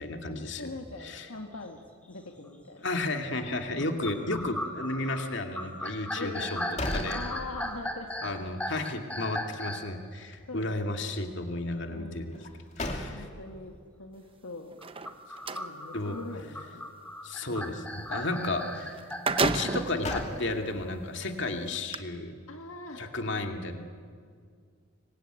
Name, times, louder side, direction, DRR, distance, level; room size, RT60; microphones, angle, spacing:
voice 1, 0.0-0.7 1.0-1.3 2.8-6.6 6.9-7.2 8.2-12.4 12.8-13.3 15.3-15.4 15.9-16.2 17.2-18.9 19.4-22.4 23.0-23.8, left 2 dB, 55° left, 4 dB, 2.5 m, -33 dB
voice 2, 0.6-1.8 2.1-2.9 6.2-6.8 7.1-8.4 10.5-10.7 11.9-12.2 13.1-14.7 15.5-16.9 22.5-23.1, left 3 dB, 70° left, 3 dB, 1.9 m, -42 dB
sound 1, 0.8-1.0 1.6-1.7 2.4-2.7 3.8-9.9 14.8-20.4, left 1 dB, 5° left, 2.2 m, -37 dB
sound 2, 6.4-8.0 8.4-8.5 12.3-13.6 19.6-20.9, left 1 dB, 30° left, 2.6 m, -37 dB
sound 3, 14.7-15.7 18.5-18.6 18.9-20.0 20.7-20.8 21.7-22.0, right 3 dB, 25° right, 0.8 m, -30 dB
26.5 x 23.0 x 9.2 m, 2.1 s
head